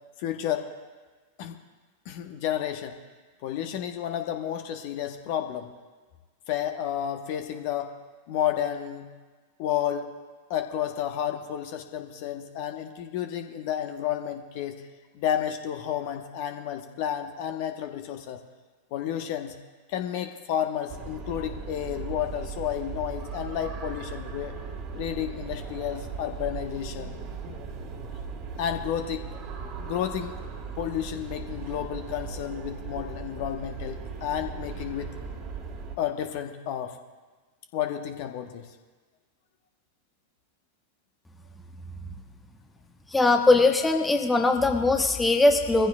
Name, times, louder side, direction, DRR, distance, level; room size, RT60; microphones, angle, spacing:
voice 1, 0.2-0.7 1.4-1.6 2.0-3.0 3.4-5.7 6.5-7.9 8.3-9.1 9.6-10.1 10.5-14.8 15.1-18.4 18.9-19.5 19.9-24.5 24.9-27.2 28.6-29.3 29.8-30.4 30.8-35.1 36.0-37.0 37.7-38.7, left 10 dB, 45° left, 6 dB, 1.2 m, -31 dB
sound 1, 20.9-36.0, right 5 dB, 35° right, 1.8 m, -38 dB
voice 2, 43.1-45.9, left 2 dB, 10° left, 4 dB, 1.0 m, -21 dB
22.0 x 15.0 x 2.4 m, 1.4 s
figure-of-eight pair, 90°, 0 cm